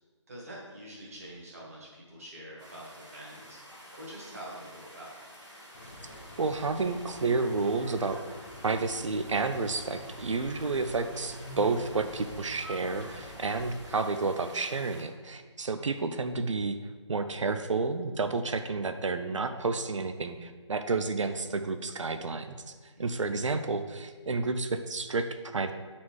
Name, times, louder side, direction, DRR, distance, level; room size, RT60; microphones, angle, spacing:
voice 1, 0.3-3.6 4.0-5.2 22.9-23.3, right 1 dB, 30° right, -4 dB, 1.6 m, -45 dB
sound 1, 2.6-15.0, equal, 5° right, 0.9 m, -50 dB
sound 2, 5.7-13.8, left 1 dB, 20° left, 0.7 m, -46 dB
voice 2, 6.4-8.2 8.6-16.8 17.1-22.7 23.0-25.7, right 3 dB, 80° right, 8 dB, 0.5 m, -30 dB
7.3 x 4.3 x 4.7 m, 1.5 s
hypercardioid pair, 175°, 16 cm